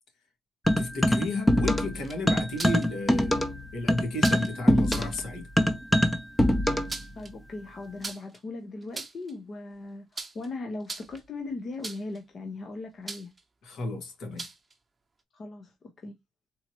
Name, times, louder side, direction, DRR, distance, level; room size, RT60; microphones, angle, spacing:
sound 1, 0.7-2.0 2.3-7.0, left 1 dB, 15° left, 0.7 m, -23 dB
voice 1, 0.8-3.4 3.7-5.5 13.6-14.5, left 2 dB, 75° left, 1.8 m, -33 dB
sound 2, 1.9-2.9 4.2-4.5 4.8-5.2 6.6-7.3 8.0-8.4 8.8-9.3 10.2-10.5 10.8-11.3 11.8-12.2 13.1-13.4 14.4-14.7, right 3 dB, 25° right, 0.9 m, -39 dB
voice 2, 7.1-13.3 15.3-16.2, left 3 dB, 45° left, 0.9 m, -39 dB
3.9 x 3.0 x 3.0 m
cardioid pair, 90°, 0 cm